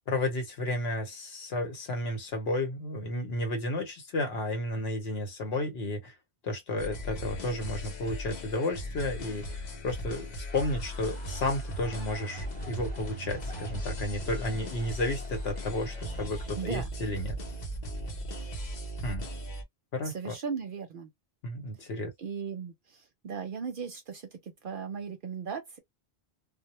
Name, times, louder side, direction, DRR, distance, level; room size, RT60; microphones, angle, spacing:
voice 1, 0.0-6.2 6.4-10.3 10.5-17.4 19.0-19.3 19.9-20.3 21.4-22.1, left 1 dB, 75° left, 1.0 m, -32 dB
sound 1, 6.8-19.6, equal, 50° left, 0.7 m, -37 dB
sound 2, 10.5-16.2, left 2 dB, 10° left, 1.0 m, -50 dB
voice 2, 16.6-16.9 20.0-21.1 22.2-25.8, right 6 dB, 60° right, 0.7 m, -37 dB
2.1 x 2.0 x 2.8 m
omnidirectional pair, 1.1 m